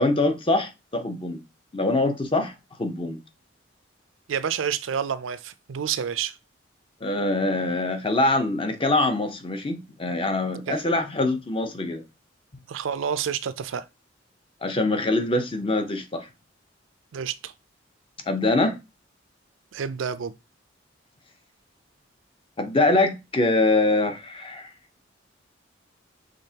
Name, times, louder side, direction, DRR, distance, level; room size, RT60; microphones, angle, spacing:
voice 1, 0.0-1.4 1.7-2.5 2.8-3.2 7.0-12.0 14.6-16.3 18.3-18.8 22.6-24.7, left 2 dB, 25° left, 0.7 m, -24 dB
voice 2, 4.3-6.3 10.7-10.8 12.7-13.8 17.1-17.5 19.7-20.3, right 7 dB, 90° right, 0.4 m, -29 dB
5.2 x 3.6 x 2.8 m
head